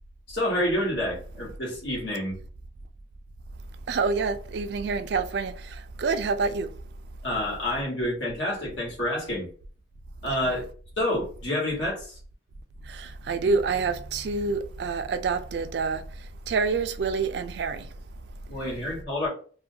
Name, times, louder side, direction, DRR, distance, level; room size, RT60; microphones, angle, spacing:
voice 1, 0.3-2.4 7.2-9.5 10.2-10.7 11.0-12.2 18.5-19.3, left 1 dB, 75° left, 1.3 m, -28 dB
voice 2, 3.9-6.7 10.4-10.6 12.9-16.0 16.5-17.9, right 4 dB, 60° right, 0.3 m, -27 dB
2.4 x 2.1 x 2.6 m
head